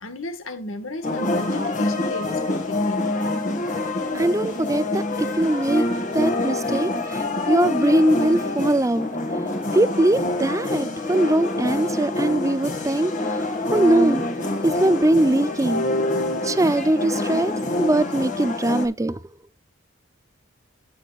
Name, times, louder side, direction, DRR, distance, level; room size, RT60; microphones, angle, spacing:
voice 1, 0.0-3.1, left 2 dB, 80° left, 1.7 m, -33 dB
sound 1, 1.0-18.9, left 2 dB, 40° left, 2.0 m, -26 dB
voice 2, 4.1-5.8 6.1-9.1 9.7-14.2 14.6-15.8 16.4-19.2, right 1 dB, 15° right, 0.5 m, -21 dB
16.0 x 6.5 x 2.4 m
head